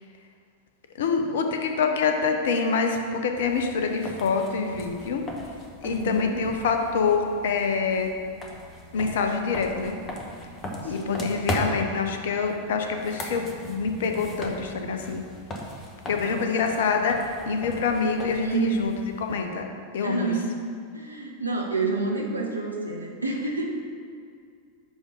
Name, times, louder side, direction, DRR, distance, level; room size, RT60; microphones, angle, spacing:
voice 1, 1.0-5.2 5.8-8.1 8.9-10.0 10.8-15.2 16.1-18.9 19.2-19.6 19.9-20.3, left 5 dB, 60° left, 4 dB, 0.8 m, -26 dB
sound 1, 3.3-19.4, equal, 25° left, 1.1 m, -38 dB
voice 2, 5.8-6.4 10.8-11.3 16.2-16.8 18.4-18.9 20.0-20.5 20.9-23.7, right 3 dB, 85° right, -1 dB, 1.0 m, -29 dB
10.5 x 3.7 x 5.1 m, 2.3 s
figure-of-eight pair, 90°, 0 cm